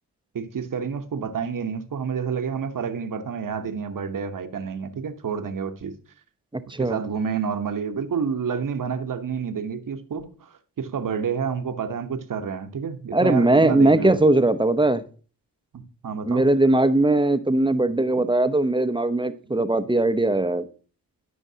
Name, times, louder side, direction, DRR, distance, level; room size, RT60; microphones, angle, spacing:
voice 1, 0.3-5.9 6.8-14.2 15.7-16.5 18.2-18.3, right 6 dB, 55° right, 1.1 m, -29 dB
voice 2, 6.5-7.0 13.1-15.0 16.3-20.7, right 2 dB, 10° right, 0.7 m, -20 dB
12.5 x 5.1 x 2.8 m
supercardioid pair, 45°, 40 cm